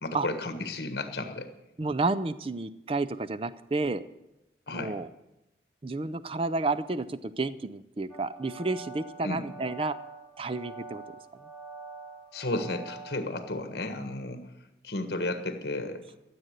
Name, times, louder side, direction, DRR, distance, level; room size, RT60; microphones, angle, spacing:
voice 1, 0.0-1.5 4.7-4.9 9.2-9.4 12.3-14.4 14.8-16.0, left 2 dB, 60° left, 7 dB, 1.4 m, -33 dB
voice 2, 1.8-4.0 4.7-5.1 5.8-10.0 10.4-11.0, right 3 dB, 30° right, 13 dB, 0.5 m, -31 dB
sound 1, 8.1-13.5, right 3 dB, 5° left, 1.9 m, -45 dB
14.0 x 7.8 x 8.1 m, 0.92 s
head